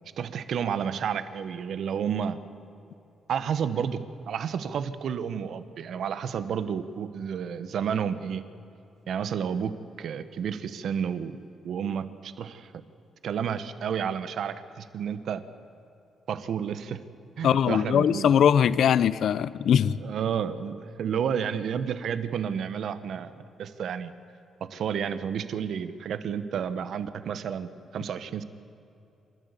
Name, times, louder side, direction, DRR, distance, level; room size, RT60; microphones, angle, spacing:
voice 1, 0.2-2.4 3.3-8.4 9.1-12.7 13.2-15.4 16.3-17.0 17.4-18.3 20.0-23.3 23.6-24.1 24.6-28.4, right 7 dB, 70° right, 12 dB, 1.1 m, -31 dB
voice 2, 17.4-20.0, left 8 dB, 70° left, 17 dB, 0.6 m, -21 dB
27.5 x 13.0 x 8.2 m, 2.8 s
cardioid pair, 110°, 0 cm